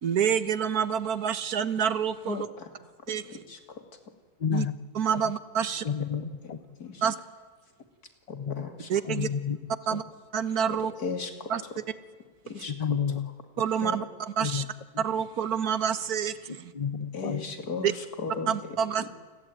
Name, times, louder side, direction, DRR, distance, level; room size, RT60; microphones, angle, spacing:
voice 1, 0.0-2.5 3.1-3.2 4.5-4.7 4.9-5.8 7.0-7.1 8.9-9.3 9.9-10.0 10.3-10.9 11.5-11.6 13.6-14.6 15.0-16.7 17.8-17.9 18.5-19.0, right 8 dB, 80° right, 14 dB, 1.8 m, -27 dB
voice 2, 2.2-2.9 3.3-3.8 5.6-6.1 6.8-7.0 8.3-8.9 10.7-11.8 12.4-12.7 13.8-14.0 17.1-19.1, left 4 dB, 85° left, 7 dB, 3.1 m, -37 dB
voice 3, 4.4-4.8 5.8-6.8 8.3-8.7 9.1-9.6 9.9-10.0 12.7-13.3 14.4-14.7 14.9-15.0 16.7-17.5, left 7 dB, 30° left, 15 dB, 0.9 m, -30 dB
28.5 x 21.5 x 9.1 m, 1.4 s
omnidirectional pair, 1.6 m